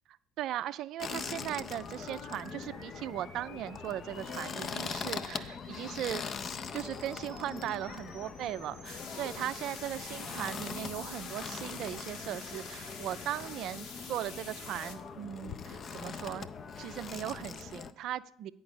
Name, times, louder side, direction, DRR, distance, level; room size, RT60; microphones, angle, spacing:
voice 1, 0.4-6.2 6.7-16.5 16.8-18.5, right 12 dB, 60° right, 16 dB, 0.3 m, -38 dB
sound 1, 1.0-17.9, left 5 dB, 45° left, 0.5 m, -42 dB
sound 2, 1.7-9.2, left 2 dB, 90° left, 1.6 m, -55 dB
sound 3, 8.8-15.0, left 5 dB, 65° left, 1.3 m, -46 dB
9.4 x 5.2 x 6.7 m, 0.65 s
hypercardioid pair, 55°, 0 cm